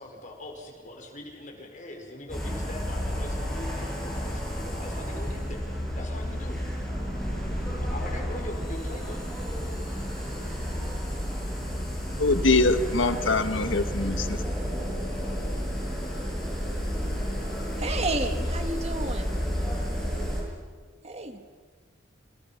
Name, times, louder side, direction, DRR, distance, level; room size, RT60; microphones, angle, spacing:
voice 1, 0.0-6.6 7.7-9.2, left 2 dB, 40° left, 2 dB, 5.1 m, -42 dB
sound 1, 2.3-20.4, equal, 5° left, 7.9 m, -31 dB
voice 2, 12.2-14.4, left 3 dB, 70° left, 9 dB, 1.5 m, -23 dB
voice 3, 17.8-19.3 21.0-21.4, right 2 dB, 35° right, 6 dB, 2.1 m, -31 dB
29.5 x 27.0 x 5.8 m, 1.5 s
head